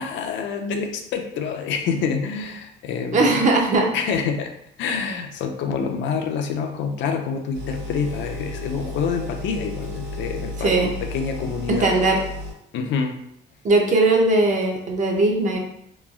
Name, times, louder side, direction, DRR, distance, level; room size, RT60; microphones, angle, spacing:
voice 1, 0.0-3.3 3.9-4.5 4.8-11.9 12.7-13.2, left 6 dB, 75° left, 4 dB, 0.4 m, -27 dB
voice 2, 3.1-3.9 10.6-10.9 11.7-12.2 13.6-15.6, right 2 dB, 40° right, 1 dB, 0.5 m, -19 dB
sound 1, 7.5-12.5, left 1 dB, 55° right, 1.3 m, -33 dB
3.0 x 2.3 x 2.3 m, 0.73 s
cardioid pair, 130°, 19 cm